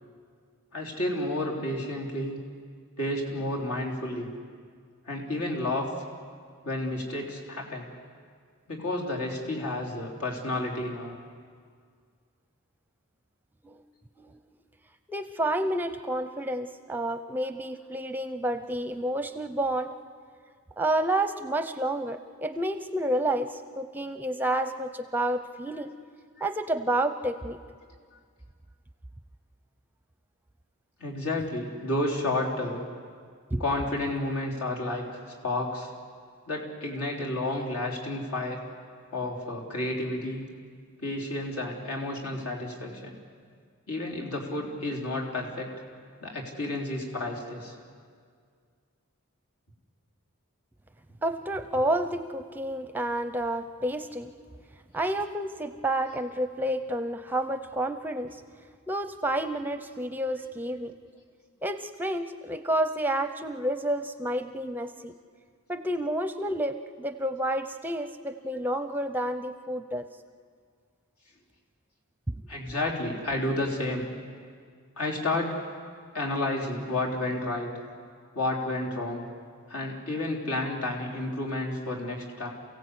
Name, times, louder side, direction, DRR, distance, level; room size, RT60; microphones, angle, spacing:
voice 1, 0.7-2.4 3.0-4.3 5.1-5.9 6.6-7.9 8.7-11.1 25.7-25.8 31.0-32.9 33.6-35.9 36.5-38.6 39.1-40.4 41.0-43.2 43.9-45.7 46.2-47.7 72.5-74.1 75.0-75.6 76.1-77.7 78.3-79.2 79.7-82.5, left 1 dB, 75° left, -1 dB, 3.7 m, -31 dB
voice 2, 15.1-19.9 20.8-25.9 26.4-27.6 33.5-33.6 51.2-54.3 54.9-58.4 58.9-60.9 61.6-65.1 65.7-70.1 72.3-72.4, right 1 dB, 10° right, 9 dB, 0.6 m, -30 dB
28.5 x 16.5 x 8.3 m, 2.1 s
head